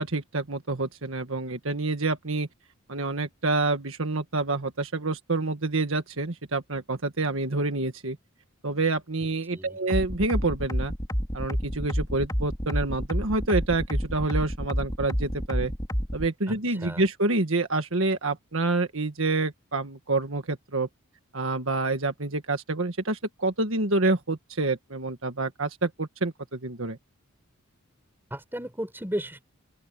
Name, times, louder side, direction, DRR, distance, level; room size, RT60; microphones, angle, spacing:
voice 1, 0.0-2.5 2.9-8.2 8.6-10.9 11.3-15.7 16.1-20.9 21.3-27.0, right 2 dB, 65° right, 1.7 m, -27 dB
sound 1, 9.9-16.3, equal, 15° left, 4.3 m, -28 dB
voice 2, 16.5-17.0 28.3-29.5, equal, 10° right, 4.9 m, -35 dB
open air
head